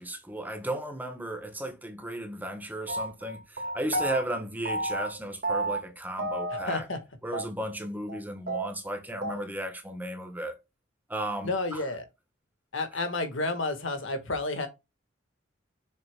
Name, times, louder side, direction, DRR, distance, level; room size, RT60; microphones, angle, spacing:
voice 1, 0.0-6.9 7.2-10.5 11.1-11.8, right 1 dB, 10° right, 1.2 m, -35 dB
sound 1, 2.9-4.2 4.7-5.2 5.4-5.9 6.2-7.0 7.3-7.4 7.7-7.8 8.1-8.2 8.5-9.4, right 1 dB, 50° right, 1.8 m, -31 dB
voice 2, 6.7-7.0 11.4-12.1 12.7-14.7, left 2 dB, 70° left, 1.5 m, -30 dB
7.0 x 6.4 x 2.2 m
head